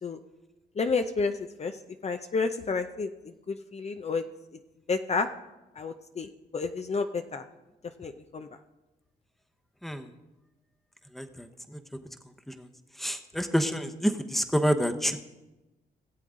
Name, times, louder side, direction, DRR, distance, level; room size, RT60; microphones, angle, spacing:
voice 1, 0.8-1.7 2.0-4.2 4.9-5.3 5.8-7.4 8.0-8.5, left 4 dB, 40° left, 7 dB, 0.6 m, -30 dB
voice 2, 11.1-11.8 12.5-12.7 13.0-15.2, equal, ahead, 7 dB, 1.0 m, -28 dB
18.0 x 7.7 x 3.8 m, 1.0 s
cardioid pair, 70°, 17 cm